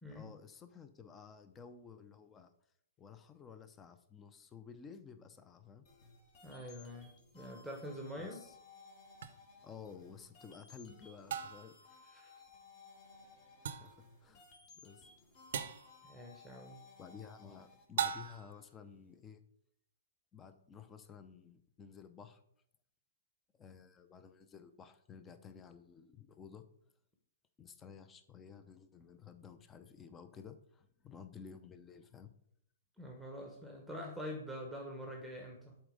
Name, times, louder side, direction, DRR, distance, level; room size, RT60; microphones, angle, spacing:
voice 1, 0.1-2.5 3.0-5.8 8.2-8.6 9.6-11.8 13.8-13.9 14.2-14.4 14.7-15.3 17.0-19.4 20.3-22.4 23.6-26.6 27.6-32.3, left 6 dB, 20° left, 10 dB, 0.7 m, -53 dB
sound 1, 5.8-17.8, left 4 dB, 40° left, 1.8 m, -60 dB
voice 2, 6.4-8.4 12.1-12.3 16.0-16.8 33.0-35.7, equal, ahead, 0 dB, 1.1 m, -45 dB
sound 2, 9.2-9.3 11.3-11.8 13.7-14.0 15.5-15.9 18.0-18.6, right 8 dB, 60° right, 0.6 m, -38 dB
7.8 x 4.3 x 5.1 m, 0.72 s
figure-of-eight pair, 120°, 0 cm